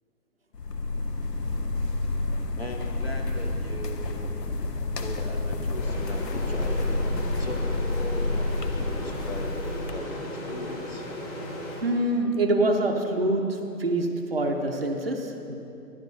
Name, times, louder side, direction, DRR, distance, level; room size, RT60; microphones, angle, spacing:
sound 1, 0.5-9.9, left 2 dB, 80° left, 1.0 m, -29 dB
voice 1, 2.6-4.3 5.0-6.9 7.2-11.1, left 1 dB, 40° left, 2 dB, 0.7 m, -39 dB
sound 2, 5.7-12.4, left 1 dB, 25° left, 1.9 m, -37 dB
voice 2, 11.8-15.6, right 2 dB, 40° right, 3 dB, 0.6 m, -25 dB
14.5 x 12.0 x 2.6 m, 2.8 s
figure-of-eight pair, 170°, 49 cm